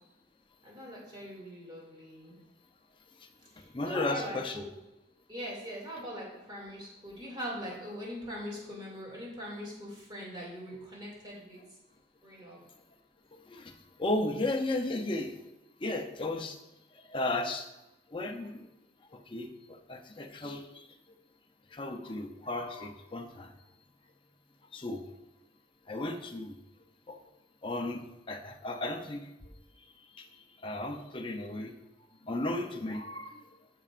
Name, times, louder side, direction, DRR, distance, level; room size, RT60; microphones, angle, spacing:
voice 1, 0.6-2.4 3.5-4.7 5.3-11.6 12.2-12.6, equal, 25° right, -4 dB, 2.4 m, -41 dB
voice 2, 3.5-4.6 13.3-15.4 15.8-16.6 16.9-17.7 18.1-18.7 19.1-21.2 21.7-23.5 24.7-25.0 25.9-26.6 27.1-27.2 27.6-30.3 30.6-31.8 32.2-33.5, left 2 dB, 30° left, 3 dB, 0.6 m, -35 dB
12.5 x 5.5 x 2.5 m, 0.94 s
head